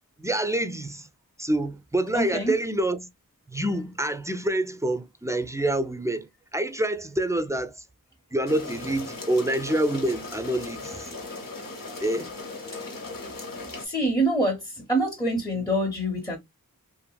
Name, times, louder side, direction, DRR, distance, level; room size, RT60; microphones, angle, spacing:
voice 1, 0.2-1.1 1.4-3.1 3.5-7.8 8.3-11.1 12.0-12.3 15.5-15.7, right 1 dB, 10° right, 0.4 m, -27 dB
voice 2, 2.1-2.5 12.8-12.9 13.8-16.4, right 1 dB, 10° left, 0.7 m, -26 dB
sound 1, 8.5-13.8, left 3 dB, 70° left, 0.8 m, -38 dB
2.7 x 2.5 x 2.2 m
wide cardioid pair, 50°, 35 cm